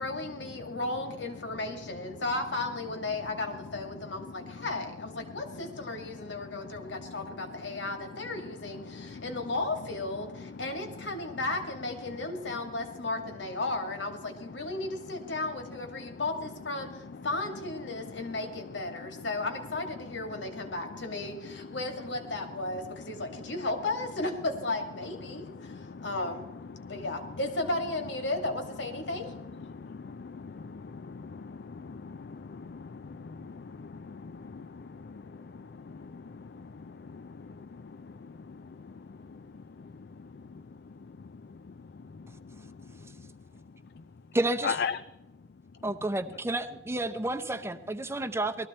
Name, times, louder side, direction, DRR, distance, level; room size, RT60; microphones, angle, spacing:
voice 1, 0.0-25.7 26.0-26.5 26.9-29.3, left 2 dB, 90° left, 5 dB, 2.2 m, -34 dB
voice 2, 8.9-9.2 25.6-26.0 26.8-26.9 29.7-35.2 35.6-36.4 37.2-37.3 38.5-38.6 44.7-44.9, left 5 dB, 60° left, 13 dB, 0.4 m, -39 dB
voice 3, 44.3-44.8 45.8-48.7, right 2 dB, 15° right, 8 dB, 0.7 m, -30 dB
19.0 x 14.0 x 4.3 m, 0.98 s
head